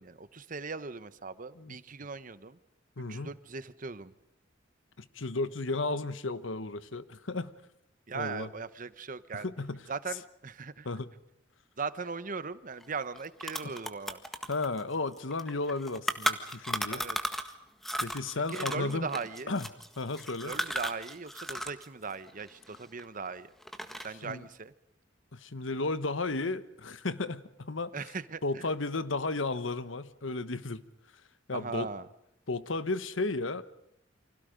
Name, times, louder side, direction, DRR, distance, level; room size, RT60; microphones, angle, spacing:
voice 1, 0.0-2.6 3.1-4.1 8.1-9.5 9.9-10.9 11.8-14.2 16.9-17.2 18.5-19.5 20.4-23.5 24.0-24.7 27.9-28.7 31.5-32.1, right 4 dB, 45° right, 14 dB, 1.0 m, -39 dB
voice 2, 3.0-3.3 5.0-7.5 8.1-8.5 9.3-9.8 10.8-11.1 14.5-17.0 18.0-19.1 19.5-19.7 20.0-20.5 24.2-24.4 25.3-27.9 28.4-30.8 31.5-31.9 32.5-33.6, left 3 dB, 85° left, 13 dB, 1.2 m, -33 dB
sound 1, 12.8-12.9 13.1-17.5 17.8-21.9 22.1-23.3 23.6-24.2, equal, ahead, 1.6 m, -35 dB
29.5 x 25.0 x 5.2 m, 0.79 s
head